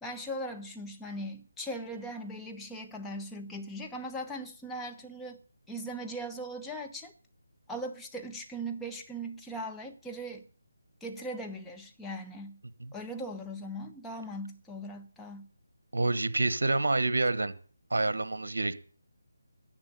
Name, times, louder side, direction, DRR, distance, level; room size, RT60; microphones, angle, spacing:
voice 1, 0.0-5.4 5.7-7.1 7.7-10.5 11.0-12.6 12.9-15.5, right 1 dB, 5° left, 1.0 m, -39 dB
voice 2, 15.9-17.5 17.9-18.7, right 2 dB, 70° right, 1.1 m, -27 dB
10.5 x 8.0 x 7.9 m
figure-of-eight pair, 155°, 0 cm